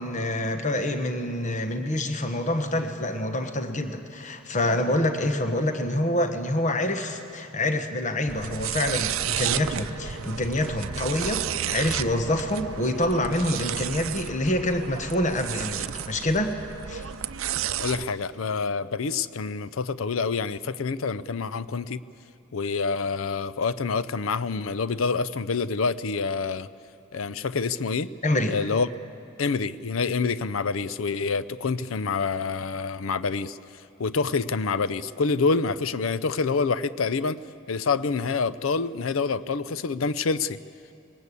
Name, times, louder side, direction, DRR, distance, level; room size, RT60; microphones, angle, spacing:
voice 1, 0.0-16.5 16.9-17.1 28.2-28.6, left 1 dB, 35° left, 7 dB, 1.2 m, -26 dB
sound 1, 8.3-18.0, right 10 dB, 85° right, 0.6 m, -32 dB
voice 2, 17.8-22.0 22.5-26.7 27.1-28.1 28.5-28.9 29.4-33.6 34.0-37.4 37.7-40.6, left 4 dB, 85° left, 16 dB, 0.6 m, -27 dB
21.0 x 19.5 x 8.4 m, 2.6 s
head